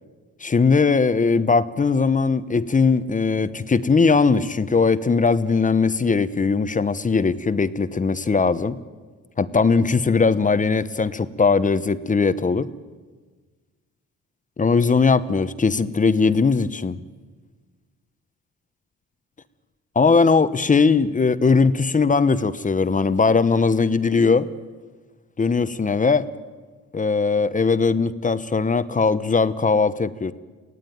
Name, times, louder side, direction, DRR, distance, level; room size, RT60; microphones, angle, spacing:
voice 1, 0.4-8.7 9.4-12.7 14.6-17.0 19.9-24.5 25.4-26.3 26.9-30.3, left 4 dB, 25° left, 14 dB, 0.9 m, -19 dB
22.5 x 17.0 x 9.5 m, 1.4 s
cardioid pair, 90°, 30 cm